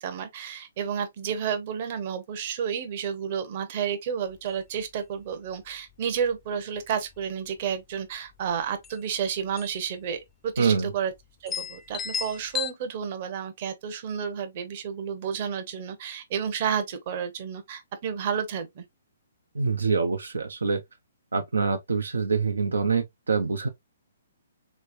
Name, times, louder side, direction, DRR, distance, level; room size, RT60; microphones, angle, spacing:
voice 1, 0.0-11.1 11.4-18.8, right 7 dB, 45° right, 0.9 m, -31 dB
sound 1, 4.3-4.5 4.8-4.9 5.3-5.7 6.2-6.4 6.8-7.4 8.5-8.6 8.8-9.0 9.6-9.9 10.1-10.2 10.9-11.0 11.5-12.7, left 7 dB, 15° left, 0.5 m, -34 dB
voice 2, 10.6-10.9 19.5-20.8 21.3-23.7, right 5 dB, 85° right, 0.5 m, -25 dB
3.3 x 3.2 x 2.5 m
hypercardioid pair, 135°, 0 cm